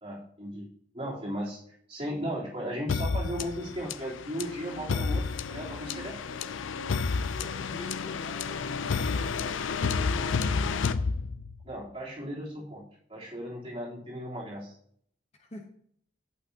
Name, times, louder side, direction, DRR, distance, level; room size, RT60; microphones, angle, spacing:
voice 1, 0.0-0.7 0.9-1.6 1.9-6.2 11.6-12.8 13.1-14.8, equal, 30° right, -6 dB, 3.4 m, -36 dB
sound 1, 2.9-11.7, left 5 dB, 85° left, 0.5 m, -31 dB
voice 2, 7.3-10.8 15.4-15.7, left 1 dB, 30° left, 3 dB, 0.9 m, -44 dB
11.5 x 8.2 x 2.9 m, 0.64 s
head